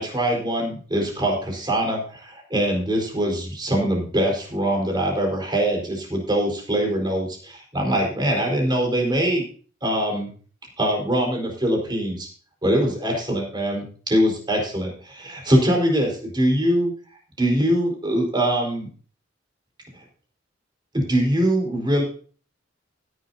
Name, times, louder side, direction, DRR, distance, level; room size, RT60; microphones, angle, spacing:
voice 1, 0.0-9.4 9.8-10.3 10.8-12.3 12.6-16.9 17.4-18.9 20.9-22.0, right 1 dB, 25° right, 0 dB, 4.5 m, -23 dB
16.5 x 10.5 x 2.8 m, 0.42 s
head